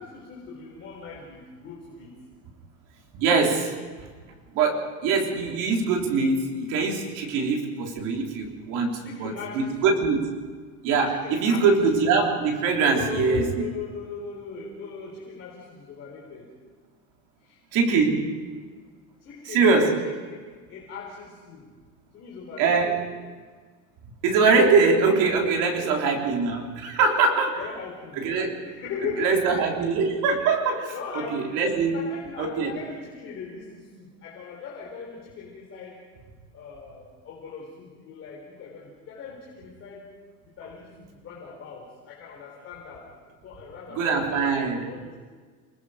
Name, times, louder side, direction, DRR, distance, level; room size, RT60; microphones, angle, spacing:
voice 1, 0.0-2.1 9.0-10.0 11.1-11.6 12.9-16.5 17.4-17.6 19.2-19.7 20.0-20.1 20.7-21.7 22.1-23.2 25.6-26.0 27.6-28.2 28.6-29.9 30.9-31.6 31.8-36.0 36.5-40.1 40.5-43.1 43.4-44.6 44.8-45.2, left 5 dB, 30° left, -3 dB, 4.0 m, -38 dB
voice 2, 3.1-3.7 4.5-10.4 10.8-13.4 17.7-18.3 19.4-20.0 22.6-23.0 24.2-27.6 28.2-28.6 29.2-32.0 32.4-32.7 43.9-44.9, right 4 dB, 45° right, 1 dB, 3.9 m, -23 dB
29.0 x 20.0 x 5.1 m, 1.5 s
cardioid pair, 180°, 42 cm